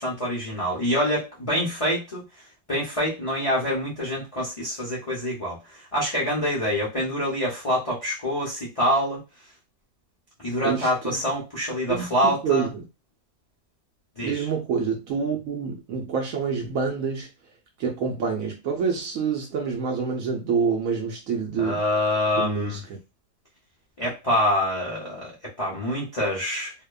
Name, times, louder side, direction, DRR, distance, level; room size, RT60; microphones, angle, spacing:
voice 1, 0.0-2.2 2.7-9.2 10.4-12.7 14.2-14.4 21.6-22.8 24.0-26.7, equal, 60° left, 0.3 m, -26 dB
voice 2, 10.6-11.2 11.9-12.7 14.2-17.3 17.8-21.8 22.4-22.8, right 6 dB, 70° right, 0.9 m, -27 dB
2.8 x 2.1 x 2.3 m
omnidirectional pair, 1.8 m